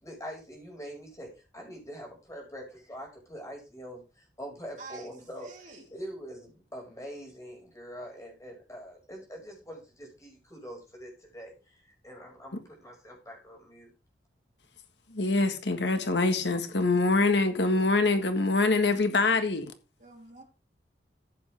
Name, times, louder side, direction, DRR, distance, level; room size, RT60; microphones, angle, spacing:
voice 1, 0.0-5.5 5.9-13.9, equal, 20° left, 5.6 m, -44 dB
voice 2, 4.8-5.1 5.4-5.9 16.0-16.4 20.0-20.4, right 3 dB, 45° right, 3.3 m, -47 dB
voice 3, 15.1-19.7, left 3 dB, 85° left, 1.6 m, -25 dB
14.5 x 8.1 x 3.4 m
head